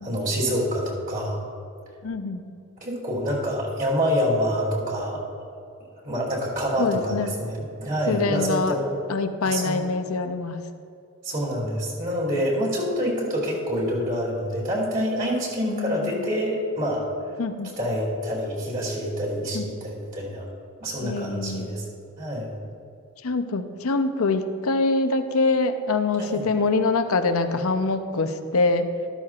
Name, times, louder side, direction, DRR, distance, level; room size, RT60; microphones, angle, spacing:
voice 1, 0.0-1.4 2.8-5.2 6.0-8.9 9.4-9.8 11.2-17.1 17.8-20.4 20.8-21.8 22.2-22.5 26.2-26.5, equal, 40° right, -5 dB, 2.8 m, -26 dB
voice 2, 2.0-2.4 6.8-7.3 8.1-8.8 9.1-10.6 15.7-16.3 17.4-17.7 19.5-19.6 21.0-21.7 23.2-28.9, left 3 dB, 75° left, 8 dB, 0.7 m, -24 dB
13.0 x 13.0 x 2.5 m, 2.5 s
head